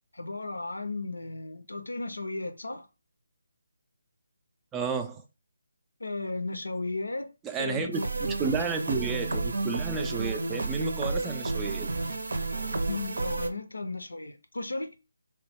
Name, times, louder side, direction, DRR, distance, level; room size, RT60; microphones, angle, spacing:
voice 1, 0.1-2.9 6.0-7.3 7.6-8.2 12.9-14.9, left 3 dB, 85° left, 0.6 m, -35 dB
voice 2, 4.7-5.2 7.4-8.0 8.4-11.9, right 4 dB, 10° right, 0.3 m, -31 dB
sound 1, 7.9-13.5, right 3 dB, 65° right, 0.6 m, -31 dB
2.9 x 2.1 x 3.4 m
figure-of-eight pair, 155°, 0 cm